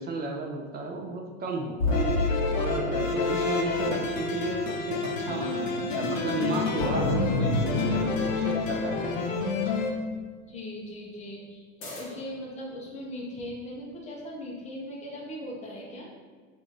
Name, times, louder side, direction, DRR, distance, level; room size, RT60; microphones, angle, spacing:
voice 1, 0.0-2.2 2.6-9.3 9.6-9.8, right 3 dB, 25° right, 2 dB, 0.4 m, -33 dB
sound 1, 1.8-4.6 6.8-9.5 11.8-12.4, left 1 dB, 45° left, 1.4 m, -32 dB
sound 2, 1.9-9.9, left 4 dB, 80° left, 0.6 m, -28 dB
voice 2, 10.5-16.1, left 1 dB, 20° left, -2 dB, 0.7 m, -39 dB
2.9 x 2.6 x 3.8 m, 1.5 s
hypercardioid pair, 105°, 38 cm